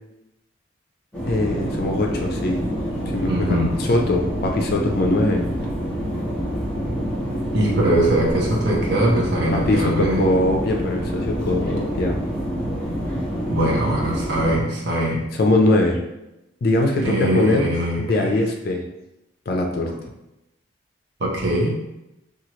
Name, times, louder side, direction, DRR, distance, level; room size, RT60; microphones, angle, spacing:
sound 1, 1.1-14.6, equal, 5° left, 1.0 m, -27 dB
voice 1, 1.3-2.6 3.1-5.4 9.5-12.2 15.4-16.0 16.6-17.7 18.0-18.8 19.5-19.9, left 2 dB, 50° left, 2 dB, 0.4 m, -21 dB
voice 2, 3.3-3.7 7.5-10.3 13.5-15.2 17.0-18.3 21.2-21.7, right 1 dB, 55° right, -3 dB, 0.7 m, -22 dB
2.8 x 2.3 x 3.0 m, 0.92 s
head